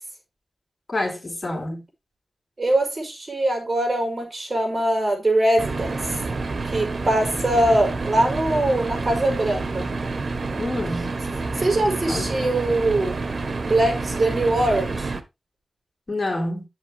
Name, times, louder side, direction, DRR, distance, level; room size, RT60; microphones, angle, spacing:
voice 1, 0.9-1.8 10.6-11.2 12.1-12.3 16.1-16.7, left 2 dB, 45° left, 3.8 m, -27 dB
voice 2, 2.6-6.0 6.6-9.9 11.6-13.1 13.6-15.1, right 1 dB, 35° right, 5.7 m, -22 dB
sound 1, 5.6-15.2, right 3 dB, 65° right, 1.3 m, -28 dB
10.5 x 8.2 x 3.2 m
wide cardioid pair, 90°, 0 cm